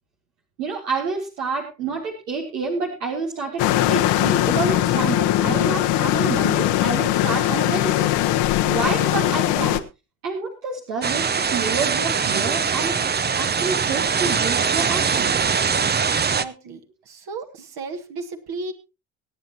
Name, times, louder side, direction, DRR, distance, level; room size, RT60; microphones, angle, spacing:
voice 1, 0.6-8.1 8.7-9.8 10.2-13.0 13.4-15.3, right 4 dB, 80° right, 0 dB, 2.2 m, -28 dB
sound 1, 3.6-9.8, left 14 dB, 65° left, 1.2 m, -20 dB
voice 2, 5.2-5.7 8.9-9.7 16.1-16.8 17.1-18.7, right 3 dB, 55° right, 4 dB, 2.1 m, -35 dB
sound 2, 11.0-16.5, right 6 dB, 20° right, 0.7 m, -22 dB
23.5 x 9.1 x 2.9 m, 0.27 s
hypercardioid pair, 55°, 46 cm